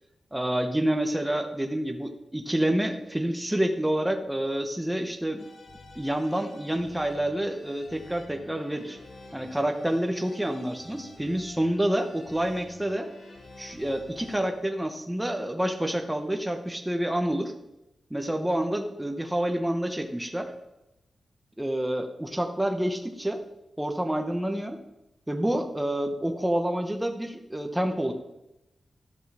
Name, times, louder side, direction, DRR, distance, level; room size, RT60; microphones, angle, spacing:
voice 1, 0.3-5.5 5.9-9.0 9.3-13.1 13.6-17.5 18.1-20.5 21.6-23.4 23.8-24.8 25.3-28.1, right 1 dB, 5° right, 5 dB, 0.8 m, -28 dB
sound 1, 5.4-14.5, left 2 dB, 85° left, 2.9 m, -49 dB
12.5 x 6.2 x 4.7 m, 0.92 s
wide cardioid pair, 145°, 0 cm